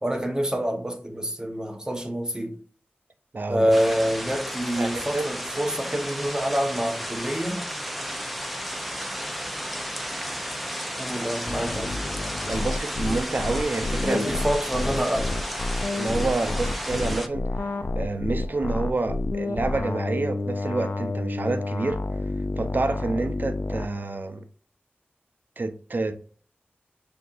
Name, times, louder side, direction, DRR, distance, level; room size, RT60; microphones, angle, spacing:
voice 1, 0.0-2.6 3.5-7.6 11.0-11.9 14.0-15.3, equal, 15° right, 0.9 m, -26 dB
voice 2, 3.3-3.7 4.8-5.3 12.5-14.3 16.0-24.5 25.6-26.2, right 3 dB, 50° right, 0.5 m, -28 dB
sound 1, 3.7-17.3, equal, ahead, 0.5 m, -33 dB
sound 2, 11.5-23.9, left 2 dB, 55° left, 0.3 m, -30 dB
6.3 x 2.8 x 2.4 m
wide cardioid pair, 65°, 4 cm